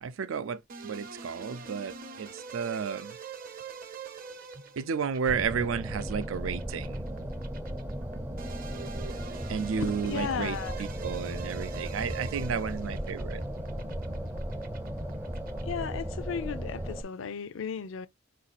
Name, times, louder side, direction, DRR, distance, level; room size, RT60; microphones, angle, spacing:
voice 1, 0.0-3.2 4.8-7.0 9.5-13.4, right 6 dB, 90° right, 0.4 m, -32 dB
sound 1, 0.7-16.0, right 5 dB, 45° right, 0.7 m, -45 dB
sound 2, 5.3-17.0, equal, 10° right, 0.4 m, -36 dB
voice 2, 9.8-10.8 15.6-18.1, left 7 dB, 70° left, 0.4 m, -35 dB
4.7 x 2.6 x 4.0 m
head